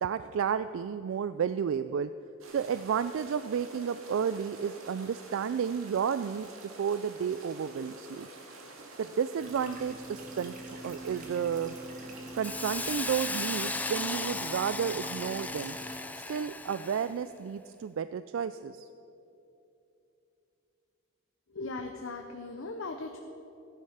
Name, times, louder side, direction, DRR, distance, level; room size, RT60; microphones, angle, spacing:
voice 1, 0.0-2.1 2.5-6.5 6.8-8.3 9.0-11.8 12.3-15.8 16.1-18.9, right 7 dB, 65° right, 12 dB, 0.3 m, -32 dB
sound 1, 2.4-13.6, right 2 dB, 85° right, 1.9 m, -49 dB
sound 2, 9.4-16.0, right 1 dB, 40° right, 1.9 m, -44 dB
Hiss, 12.4-17.2, left 3 dB, 10° left, 0.4 m, -36 dB
voice 2, 21.5-23.2, left 3 dB, 70° left, 4 dB, 0.8 m, -38 dB
15.0 x 10.0 x 5.7 m, 2.8 s
head